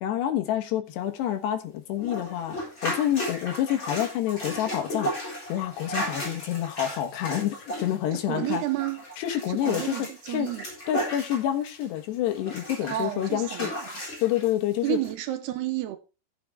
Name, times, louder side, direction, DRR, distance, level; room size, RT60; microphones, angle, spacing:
voice 1, 0.0-2.6 2.8-8.6 9.2-10.0 10.3-10.5 10.9-13.7 14.2-15.0, left 11 dB, 80° left, 3.4 m, -28 dB
sound 1, 2.0-12.0 12.3-14.5 15.0-15.1, equal, 25° left, 7.6 m, -35 dB
voice 2, 8.1-9.0 9.5-10.7 12.8-13.9 14.8-16.0, right 14 dB, 75° right, 2.9 m, -31 dB
15.0 x 7.7 x 3.6 m
omnidirectional pair, 4.8 m